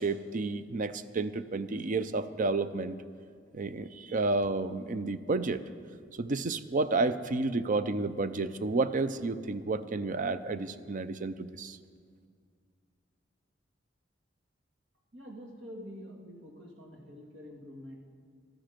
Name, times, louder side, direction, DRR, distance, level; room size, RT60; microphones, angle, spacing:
voice 1, 0.0-3.0 3.5-5.6 6.1-11.8, right 3 dB, 45° right, 13 dB, 0.5 m, -31 dB
voice 2, 15.1-18.0, equal, 70° right, 0 dB, 2.2 m, -46 dB
13.5 x 13.0 x 5.1 m, 2.1 s
head